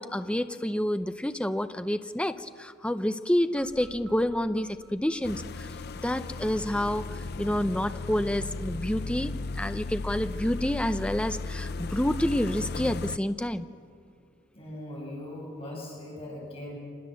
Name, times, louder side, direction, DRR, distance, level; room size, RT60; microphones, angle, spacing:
voice 1, 0.0-5.7 6.0-13.7, left 1 dB, 5° left, 10 dB, 0.6 m, -29 dB
sound 1, 3.6-6.6, right 2 dB, 70° right, 1.8 m, -52 dB
sound 2, 5.2-13.2, left 3 dB, 55° left, 0.6 m, -35 dB
voice 2, 14.5-16.8, left 1 dB, 30° left, -3 dB, 6.0 m, -40 dB
26.5 x 20.0 x 7.5 m, 2.3 s
head